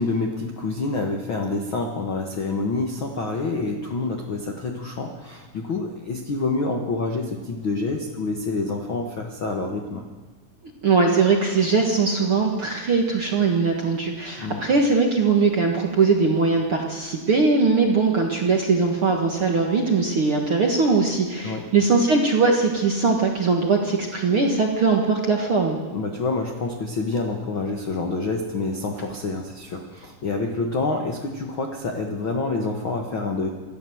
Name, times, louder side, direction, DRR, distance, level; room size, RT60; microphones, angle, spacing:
voice 1, 0.0-10.0 14.4-14.6 21.4-21.6 25.9-33.5, left 3 dB, 60° left, 2 dB, 1.3 m, -27 dB
voice 2, 10.8-25.8, right 4 dB, 55° right, 0 dB, 1.6 m, -20 dB
26.5 x 13.0 x 7.9 m, 1.4 s
omnidirectional pair, 4.7 m